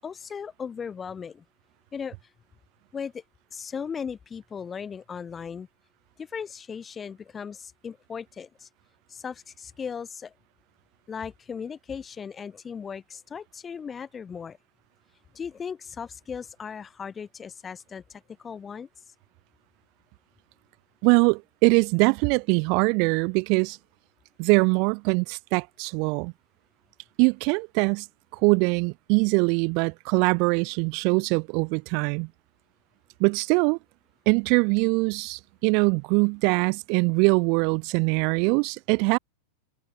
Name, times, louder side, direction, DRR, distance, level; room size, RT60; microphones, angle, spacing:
voice 1, 0.0-1.4 1.9-2.2 2.9-3.2 3.5-5.7 6.2-8.7 9.1-10.3 11.1-14.6 15.3-18.9, left 6 dB, 20° left, 0.7 m, -37 dB
voice 2, 21.0-23.8 24.4-26.3 27.2-28.1 28.3-32.3 33.2-33.8 34.3-39.2, right 35 dB, 45° right, 0.4 m, -22 dB
figure-of-eight pair, 90°, 0 cm